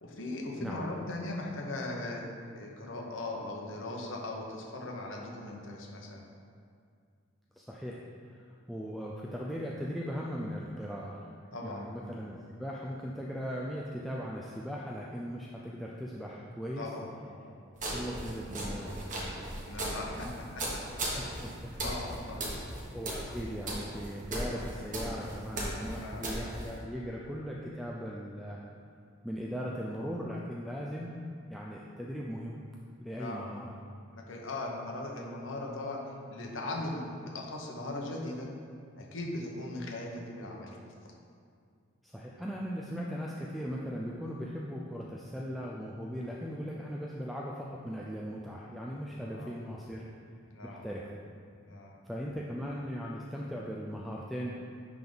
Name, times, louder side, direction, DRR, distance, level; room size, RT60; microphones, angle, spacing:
voice 1, 0.0-2.3 2.6-6.2 11.5-11.9 16.8-17.6 19.5-20.3 20.6-20.7 21.8-22.6 25.9-26.3 33.1-33.5 34.1-36.0 36.3-38.5 39.0-40.8 49.3-49.5 50.5-50.8 51.6-52.0, left 2 dB, 75° left, -1 dB, 1.0 m, -39 dB
voice 2, 7.5-8.0 8.3-11.3 11.6-12.3 12.6-16.9 17.9-19.3 21.1-21.9 22.4-22.5 22.9-28.6 29.2-31.1 31.5-32.6 33.0-33.8 42.0-50.0 50.6-51.1 52.1-54.5, equal, ahead, -4 dB, 0.4 m, -38 dB
sound 1, 17.8-26.8, right 1 dB, 40° right, 1.3 m, -38 dB
10.0 x 3.6 x 3.9 m, 2.2 s
head